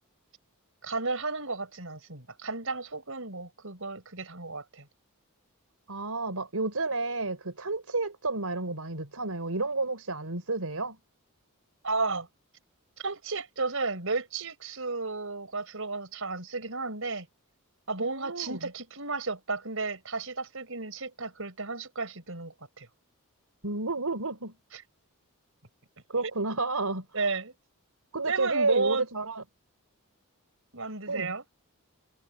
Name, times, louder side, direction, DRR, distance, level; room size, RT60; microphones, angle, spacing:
voice 1, 0.8-4.9 11.8-12.3 13.0-17.3 17.9-22.9 24.7-24.8 27.1-27.5 28.3-29.0 30.7-31.4, right 3 dB, 65° right, 6.6 m, -33 dB
voice 2, 5.9-11.0 18.0-18.7 23.6-24.5 26.1-27.2 28.1-29.4 31.1-31.3, right 3 dB, 80° right, 4.1 m, -31 dB
head